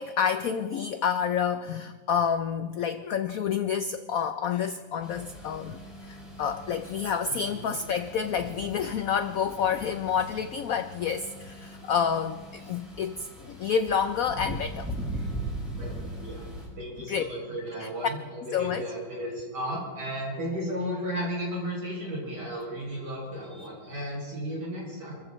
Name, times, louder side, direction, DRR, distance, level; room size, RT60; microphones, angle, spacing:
voice 1, 0.0-15.3 17.1-17.2 17.8-17.9 18.5-18.8 23.5-23.7, left 7 dB, 75° left, 10 dB, 0.8 m, -29 dB
sound 1, 5.0-16.7, right 1 dB, ahead, 6.5 m, -40 dB
voice 2, 7.3-7.7 15.7-16.5 16.7-25.2, equal, 55° right, -4 dB, 7.6 m, -34 dB
28.5 x 14.5 x 3.1 m, 1.5 s
omnidirectional pair, 2.1 m